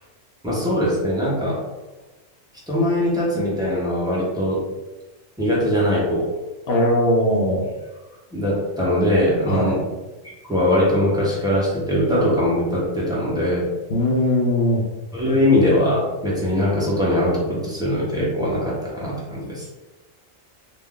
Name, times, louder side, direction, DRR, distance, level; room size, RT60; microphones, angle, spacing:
voice 1, 0.4-1.6 2.7-4.6 5.4-6.4 8.3-9.8 10.2-13.6 15.1-19.6, left 1 dB, 5° right, -7 dB, 0.5 m, -21 dB
voice 2, 6.7-7.6 9.5-9.8 13.9-14.8, left 1 dB, 65° left, -2 dB, 0.7 m, -19 dB
2.4 x 2.3 x 3.5 m, 1.2 s
omnidirectional pair, 1.4 m